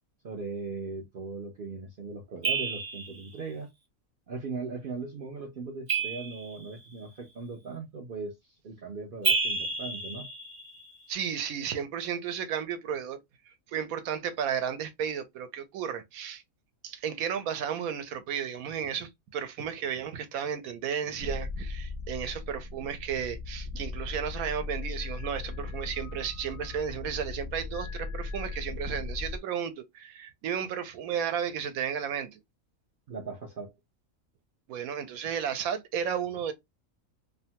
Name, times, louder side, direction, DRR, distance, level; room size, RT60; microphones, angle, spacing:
voice 1, 0.2-3.7 4.3-10.3 33.1-33.7, right 4 dB, 65° right, 0.5 m, -39 dB
sound 1, 2.4-3.3 5.9-6.9 9.2-10.9, right 4 dB, 35° right, 0.8 m, -30 dB
voice 2, 11.1-13.2 13.7-16.4 16.8-32.4 34.7-36.5, right 8 dB, 85° right, 1.1 m, -33 dB
sound 2, 21.2-29.4, left 3 dB, 60° left, 0.5 m, -38 dB
2.7 x 2.2 x 2.7 m
omnidirectional pair, 1.5 m